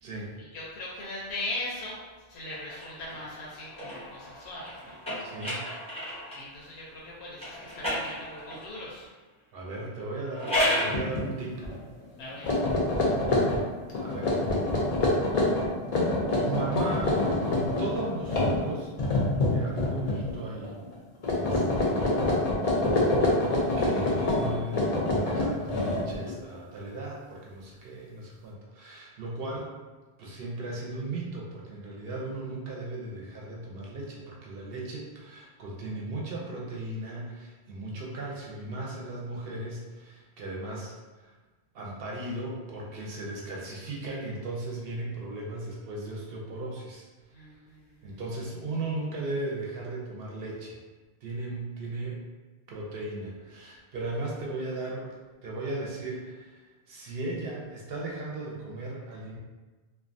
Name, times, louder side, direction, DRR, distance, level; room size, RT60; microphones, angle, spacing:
voice 1, 0.4-2.0 2.3-5.0 6.4-9.1 12.2-12.5 47.3-48.2, left 2 dB, 80° left, -5 dB, 0.8 m, -39 dB
sound 1, 2.5-6.5 7.4-8.7 10.2-11.0, equal, 5° left, 0.6 m, -32 dB
voice 2, 5.2-5.7 9.5-11.7 13.1-13.6 14.0-14.4 16.3-18.9 19.3-20.8 21.3-22.4 23.8-29.7 30.2-41.3 41.7-47.1 48.0-50.8 51.2-52.2 52.7-55.1 55.4-59.4, right 2 dB, 65° right, -3 dB, 0.8 m, -37 dB
sound 2, 10.9-11.2 11.6-11.8 12.3-20.3 20.6-21.0 21.2-26.3, left 2 dB, 50° left, 0.5 m, -26 dB
2.5 x 2.2 x 2.5 m, 1.3 s
omnidirectional pair, 1.1 m